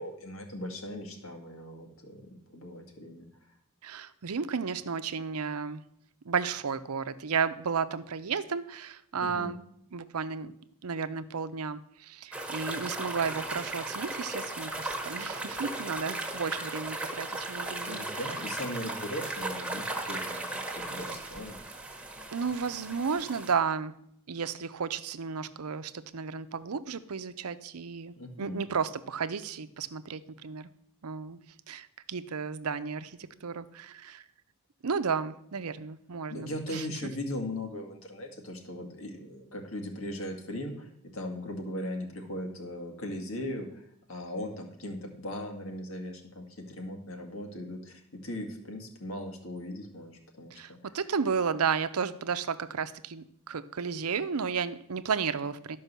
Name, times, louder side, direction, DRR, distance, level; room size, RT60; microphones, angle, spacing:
voice 1, 0.0-3.3 9.2-9.5 17.9-20.5 20.8-21.6 28.2-28.7 33.2-33.5 36.3-50.9, left 1 dB, 70° left, 3 dB, 2.1 m, -39 dB
voice 2, 3.8-5.8 6.2-9.6 9.9-10.5 10.8-18.0 22.3-23.9 24.3-30.7 31.0-31.4 31.7-34.2 34.8-36.9 50.5-55.8, right 5 dB, 85° right, 12 dB, 0.7 m, -33 dB
sound 1, 12.3-23.5, right 2 dB, 5° right, 1.2 m, -36 dB
12.5 x 5.4 x 6.8 m, 0.73 s
head